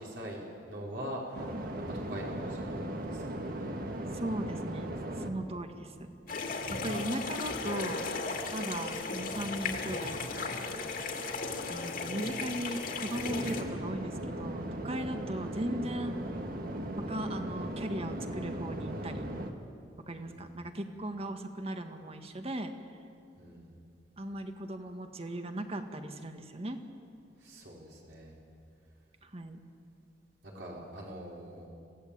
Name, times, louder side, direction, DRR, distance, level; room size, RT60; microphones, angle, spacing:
voice 1, 0.0-1.6 1.9-3.7 7.8-7.9 15.3-15.6 20.1-20.5 23.4-23.7 27.4-28.3 30.4-31.7, equal, 75° right, -3 dB, 5.2 m, -43 dB
sound 1, 1.3-7.6 7.9-19.5, right 1 dB, 55° right, 1.8 m, -38 dB
voice 2, 4.1-5.9 6.7-8.1 8.5-10.6 11.7-16.2 17.1-19.3 20.1-22.7 24.2-26.8 29.2-29.6, right 1 dB, 35° right, 6 dB, 1.7 m, -37 dB
sound 2, 6.3-13.6, left 3 dB, 55° left, 2.4 m, -36 dB
26.5 x 16.5 x 8.7 m, 2.4 s
head